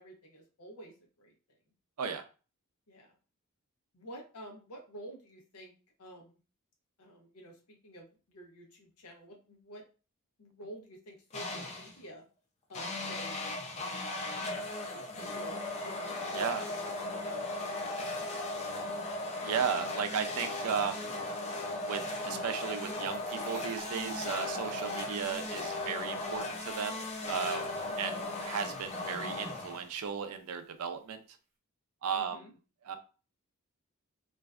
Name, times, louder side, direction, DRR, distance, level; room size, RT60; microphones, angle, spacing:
voice 1, 0.0-1.3 2.9-3.2 3.9-5.7 6.0-6.4 7.0-9.8 10.4-12.2 12.7-13.5 13.8-14.2 14.6-18.7 27.7-28.1 32.1-32.5, right 1 dB, 90° left, 1 dB, 0.7 m, -51 dB
sound 1, 11.3-12.0 12.7-30.1, left 2 dB, 30° left, 0.4 m, -37 dB
voice 2, 16.3-16.7 19.4-21.1 21.8-27.7 28.0-31.2 32.0-32.5 32.8-33.0, right 7 dB, 70° right, 8 dB, 0.4 m, -35 dB
Fill (with liquid), 22.9-30.3, equal, 45° right, 0.8 m, -52 dB
2.5 x 2.1 x 2.3 m, 0.35 s
head